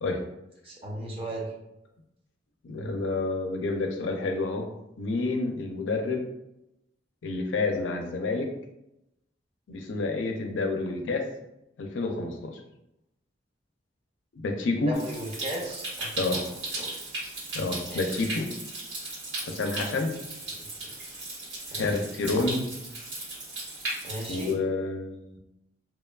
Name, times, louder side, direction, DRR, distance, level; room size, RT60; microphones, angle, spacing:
voice 1, 0.6-1.5 14.9-16.4 16.8-17.0 17.9-18.2 20.5-20.9 21.7-22.2 24.0-24.5, right 1 dB, 30° right, -2 dB, 0.6 m, -37 dB
voice 2, 2.6-4.7 5.0-6.2 7.2-8.5 9.7-11.3 11.8-12.6 14.3-14.9 16.2-16.4 17.5-18.5 19.4-20.1 21.8-22.7 24.3-25.4, left 3 dB, 90° left, 4 dB, 0.4 m, -29 dB
Stream, 14.9-24.5, right 2 dB, 80° right, 1.5 m, -36 dB
2.9 x 2.2 x 2.2 m, 0.87 s
head